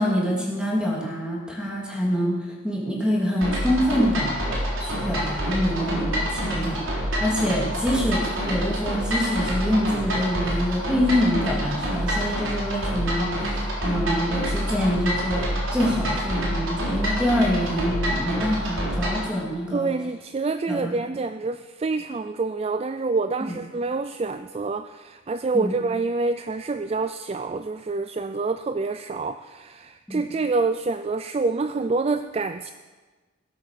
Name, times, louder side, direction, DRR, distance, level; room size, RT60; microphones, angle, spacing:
voice 1, 0.0-19.9 20.7-21.0 23.5-23.6 25.5-25.7 30.1-30.3, equal, 5° right, -3 dB, 2.8 m, -26 dB
sound 1, 3.4-19.3, equal, 85° right, 3.9 m, -27 dB
voice 2, 19.7-32.7, right 3 dB, 30° right, 10 dB, 0.3 m, -27 dB
17.0 x 8.4 x 6.7 m, 1.3 s
head